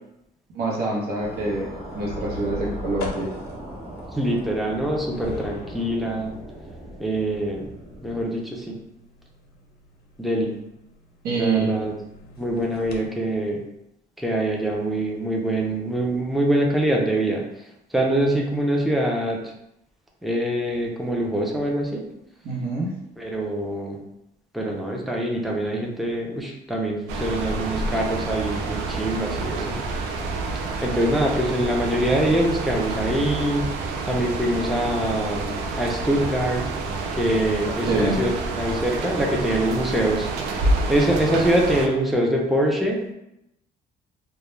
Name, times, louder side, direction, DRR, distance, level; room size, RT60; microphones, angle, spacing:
voice 1, 0.5-1.7 1.9-3.3 11.2-11.7 22.4-22.9 37.6-38.2, right 3 dB, 70° right, -3 dB, 0.8 m, -26 dB
sound 1, 1.2-8.2, right 1 dB, 35° right, 0.8 m, -39 dB
sound 2, 1.9-13.1, left 3 dB, 75° left, 0.5 m, -41 dB
voice 2, 4.1-6.4 7.0-7.7 8.0-8.8 10.2-10.5 11.3-11.9 12.4-13.6 14.2-17.4 17.9-19.5 20.2-22.1 23.2-24.0 24.5-29.8 30.8-36.7 37.1-40.6 40.9-43.1, right 1 dB, ahead, -1 dB, 0.4 m, -24 dB
sound 3, 27.1-41.9, right 3 dB, 85° right, 0.4 m, -28 dB
2.2 x 2.1 x 3.1 m, 0.85 s
cardioid pair, 110°, 17 cm